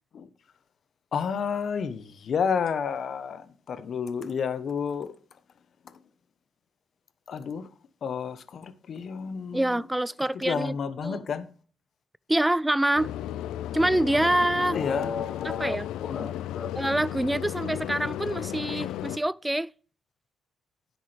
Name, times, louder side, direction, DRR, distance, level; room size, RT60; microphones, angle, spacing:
voice 1, 1.1-5.1 7.3-7.6 8.0-9.7 10.4-11.5 14.2-14.3 14.5-16.8, left 6 dB, 55° left, 1.0 m, -31 dB
voice 2, 9.5-10.7 11.0-11.2 12.3-13.1 13.7-14.8 15.4-15.9 16.8-19.7, right 1 dB, 10° right, 0.3 m, -26 dB
sound 1, 13.0-19.2, left 12 dB, 85° left, 0.4 m, -34 dB
10.0 x 8.2 x 3.4 m
cardioid pair, 90°, 0 cm